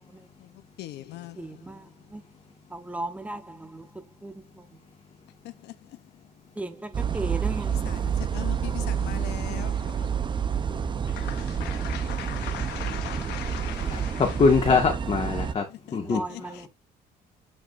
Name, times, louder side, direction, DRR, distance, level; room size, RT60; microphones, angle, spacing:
voice 1, 0.8-1.6 5.4-5.7 7.7-10.4 11.1-14.4 15.7-16.7, left 14 dB, 80° left, 0.9 m, -40 dB
voice 2, 1.4-1.9 2.1-2.2 2.7-3.8 4.2-4.3 6.6-7.8 16.0-16.7, right 2 dB, 10° right, 1.2 m, -36 dB
sound 1, 6.9-15.5, right 7 dB, 30° right, 0.8 m, -29 dB
voice 3, 13.9-15.6 15.9-16.2, left 4 dB, 35° left, 1.8 m, -23 dB
8.5 x 5.0 x 2.6 m
cardioid pair, 110°, 17 cm